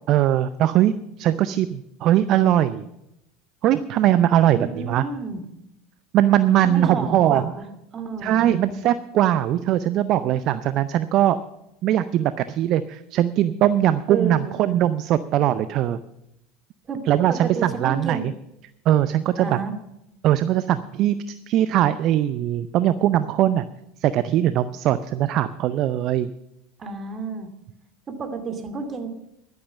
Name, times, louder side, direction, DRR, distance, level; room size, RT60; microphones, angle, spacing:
voice 1, 0.1-2.8 3.6-5.0 6.1-7.5 8.2-11.4 11.8-16.0 17.1-18.3 18.9-19.6 20.2-23.7 24.0-26.3, right 12 dB, 50° right, 14 dB, 0.5 m, -20 dB
voice 2, 4.5-5.4 6.6-7.6 7.9-8.9 14.1-14.6 16.9-17.0 17.3-18.3 19.4-19.7 26.8-27.5 28.1-29.1, right 4 dB, 30° right, 7 dB, 2.3 m, -31 dB
11.5 x 10.5 x 7.1 m, 0.85 s
figure-of-eight pair, 75°, 0 cm